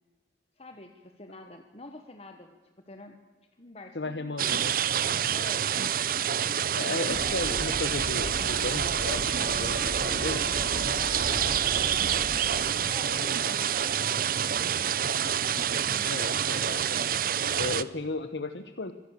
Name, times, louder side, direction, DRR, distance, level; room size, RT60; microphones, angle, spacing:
voice 1, 0.6-2.6 2.9-3.2 3.5-4.3 5.3-5.7 6.0-7.2 10.9-12.6 12.8-16.3, left 2 dB, 35° left, 6 dB, 1.5 m, -47 dB
voice 2, 3.9-4.8 6.8-10.5 13.1-13.4 16.0-16.9 17.6-18.9, left 3 dB, 75° left, 10 dB, 1.1 m, -35 dB
sound 1, 4.4-17.8, right 9 dB, 55° right, 0.7 m, -27 dB
sound 2, 7.1-12.6, left 1 dB, 55° left, 6.3 m, -37 dB
25.5 x 17.5 x 6.8 m, 1.4 s
head